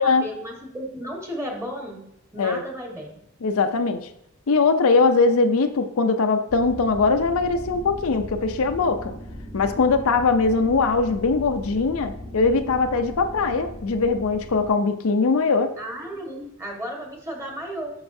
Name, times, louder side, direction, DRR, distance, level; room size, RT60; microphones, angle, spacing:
voice 1, 0.0-3.1 15.8-17.9, equal, 15° right, 0 dB, 1.3 m, -34 dB
voice 2, 3.4-4.0 4.5-9.1 9.5-15.7, left 4 dB, 75° left, 8 dB, 0.5 m, -21 dB
sound 1, 6.5-14.7, equal, 45° right, 1.6 m, -38 dB
7.9 x 5.9 x 2.7 m, 0.76 s
head